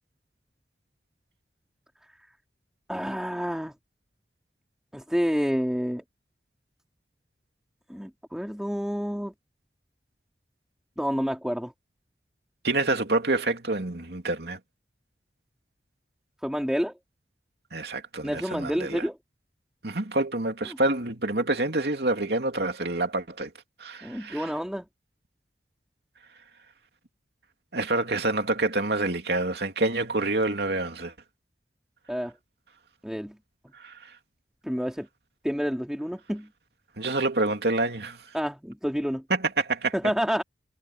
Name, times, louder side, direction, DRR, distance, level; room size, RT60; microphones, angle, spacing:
voice 1, 2.9-3.7 4.9-6.0 7.9-9.3 11.0-11.7 16.4-16.9 18.2-19.2 24.0-24.9 32.1-32.3 33.0-33.4 34.6-35.1 35.4-36.5 38.3-39.2 39.9-40.4, equal, 5° right, 3.9 m, -29 dB
voice 2, 12.6-14.6 17.7-19.0 19.8-23.5 23.8-24.4 27.7-31.1 33.8-33.9 37.0-38.2 39.3-39.9, right 2 dB, 70° right, 2.8 m, -27 dB
head